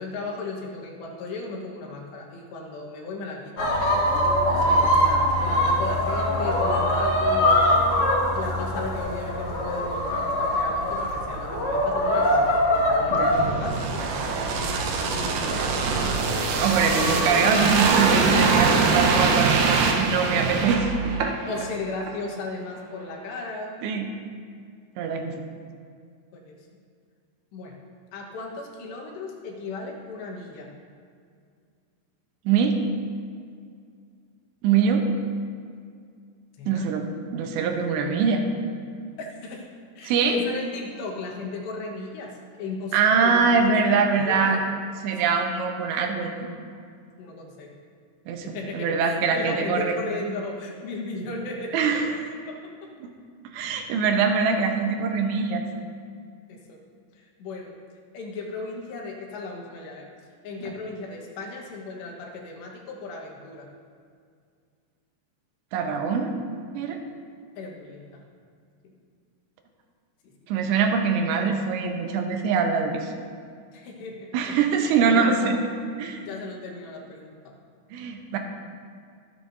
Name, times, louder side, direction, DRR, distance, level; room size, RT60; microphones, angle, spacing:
voice 1, 0.0-3.7 4.4-7.6 8.3-14.5 14.9-16.2 21.5-23.8 26.3-26.6 27.5-27.8 28.1-30.7 36.6-36.9 39.4-39.7 40.0-44.6 45.1-45.2 47.2-47.7 48.4-52.2 52.5-52.6 56.5-56.8 57.2-57.7 58.1-60.1 60.4-63.7 67.6-68.2 68.8-68.9 73.7-74.6 75.1-75.5 76.2-77.5, left 3 dB, 80° left, -1 dB, 3.7 m, -36 dB
chicken on farm, 3.6-17.9, equal, 40° left, 2.5 m, -24 dB
sound 1, 13.3-21.7 22.0-22.2, right 5 dB, 75° right, 2.1 m, -23 dB
voice 2, 16.6-20.9 23.8-24.1 25.0-25.3 32.5-32.8 34.6-35.0 36.7-37.0 37.3-38.4 40.0-40.4 42.9-44.6 45.0-46.5 48.3-50.0 51.7-52.1 53.5-55.6 60.6-60.7 65.7-66.3 66.7-67.0 70.5-73.1 74.3-75.6 76.0-76.2 77.9-78.4, right 5 dB, 90° right, 4 dB, 3.2 m, -23 dB
23.5 x 8.4 x 2.8 m, 2.2 s
omnidirectional pair, 4.9 m